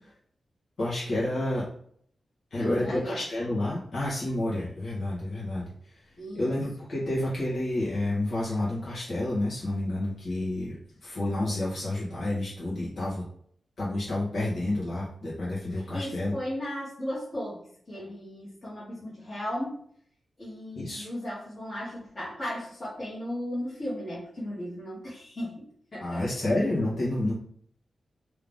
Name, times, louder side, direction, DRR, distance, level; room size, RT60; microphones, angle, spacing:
voice 1, 0.8-1.7 2.5-5.7 6.3-10.8 11.0-13.2 13.8-16.3 20.8-21.1 26.0-27.3, left 1 dB, 60° left, -8 dB, 1.9 m, -29 dB
voice 2, 2.6-3.2 6.2-6.5 15.7-19.8 20.4-26.5, equal, 30° left, -10 dB, 1.7 m, -36 dB
3.6 x 3.3 x 3.6 m, 0.63 s
wide cardioid pair, 165°, 0 cm